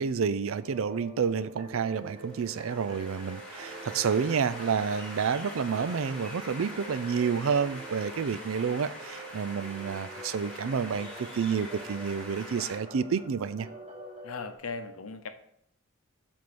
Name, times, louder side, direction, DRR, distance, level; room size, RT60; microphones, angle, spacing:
voice 1, 0.0-13.7, right 6 dB, 70° right, 14 dB, 0.4 m, -29 dB
sound 1, 0.6-14.6, right 2 dB, 30° right, 1.3 m, -46 dB
sound 2, 2.1-12.8, equal, 5° left, 2.3 m, -44 dB
voice 2, 14.2-15.3, left 4 dB, 85° left, 8 dB, 0.7 m, -38 dB
7.5 x 3.6 x 6.1 m, 0.69 s
head